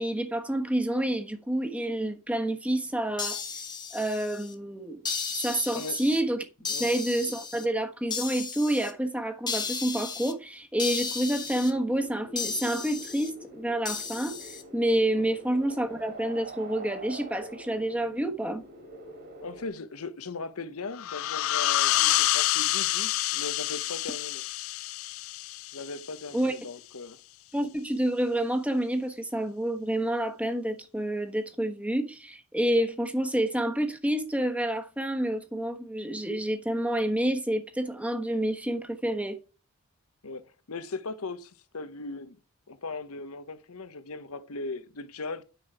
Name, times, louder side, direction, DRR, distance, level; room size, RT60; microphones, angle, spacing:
voice 1, 0.0-3.4 3.9-5.0 5.4-6.4 6.8-18.6 26.3-26.5 27.5-39.4, right 1 dB, 5° right, 1.2 m, -28 dB
sound 1, 3.2-4.5 5.0-6.2 6.6-7.6 8.1-8.9 9.5-10.3 10.8-11.7 12.4-13.3 13.8-14.6, left 5 dB, 20° left, 1.2 m, -34 dB
sound 2, 10.9-19.7, right 1 dB, 50° right, 2.6 m, -46 dB
voice 2, 19.4-24.4 25.7-27.2 40.2-42.4 42.7-45.4, left 3 dB, 80° left, 1.0 m, -38 dB
sound 3, 21.0-26.3, left 15 dB, 65° left, 0.3 m, -28 dB
9.4 x 5.9 x 4.7 m
head